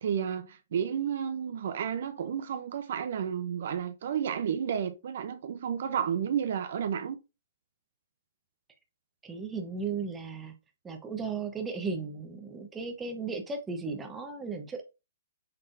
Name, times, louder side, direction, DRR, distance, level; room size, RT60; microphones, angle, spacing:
voice 1, 0.0-7.2, right 8 dB, 65° right, 0.6 m, -31 dB
voice 2, 9.2-10.5 10.8-14.8, right 4 dB, 10° right, 0.9 m, -35 dB
5.8 x 3.4 x 2.6 m
hypercardioid pair, 150°, 0 cm